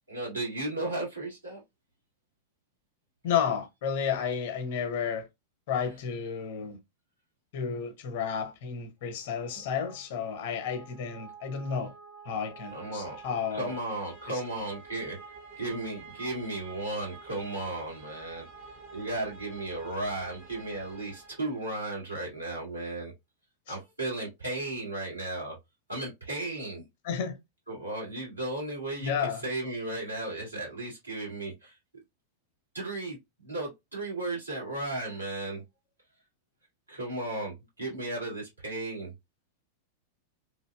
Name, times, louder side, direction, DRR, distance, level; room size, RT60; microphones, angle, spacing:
voice 1, 0.1-1.6 9.5-9.6 12.7-13.2 13.5-15.2 15.6-18.5 18.9-23.1 23.7-25.6 25.9-26.8 27.7-29.1 29.4-31.7 32.7-35.6 36.9-39.1, right 2 dB, 85° right, 2.0 m, -35 dB
voice 2, 3.2-5.3 5.7-6.8 7.5-11.9 12.2-13.8 14.3-14.4 23.7-23.8 27.0-27.4 29.0-29.4, left 7 dB, 55° left, 0.8 m, -32 dB
sound 1, 9.2-22.0, right 4 dB, 45° right, 1.2 m, -49 dB
3.2 x 2.6 x 2.2 m
figure-of-eight pair, 90°, 0 cm